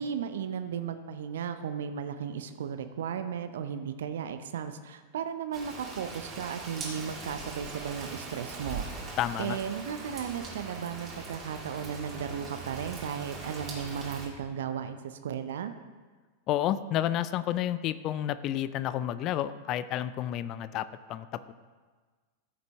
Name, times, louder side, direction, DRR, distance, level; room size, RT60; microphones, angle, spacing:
voice 1, 0.0-8.9 9.4-15.7, right 7 dB, 60° right, 9 dB, 0.6 m, -35 dB
Rain, 5.5-14.3, right 3 dB, 30° right, 2.3 m, -41 dB
voice 2, 9.2-9.6 16.5-21.5, left 12 dB, 35° left, 15 dB, 0.4 m, -30 dB
14.5 x 6.7 x 3.4 m, 1.4 s
figure-of-eight pair, 90°, 0 cm